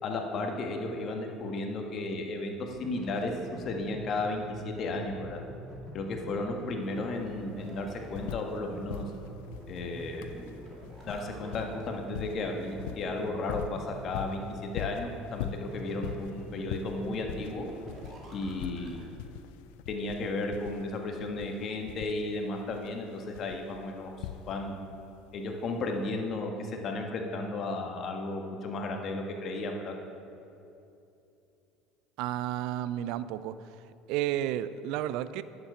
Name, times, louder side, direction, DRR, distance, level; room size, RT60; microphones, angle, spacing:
voice 1, 0.0-5.4 5.9-9.0 9.7-10.3 11.1-17.6 18.3-19.1 19.9-24.7 25.3-29.9, left 2 dB, 50° left, 3 dB, 1.4 m, -34 dB
sound 1, 2.7-19.0, equal, 40° right, 2.5 m, -46 dB
sound 2, 6.8-6.9 7.2-8.6 8.9-24.9 25.9-26.0, left 11 dB, 75° left, 0.3 m, -42 dB
voice 2, 32.2-33.5 34.1-35.4, right 12 dB, 65° right, 15 dB, 0.4 m, -31 dB
10.5 x 7.3 x 5.1 m, 2.7 s
hypercardioid pair, 70°, 0 cm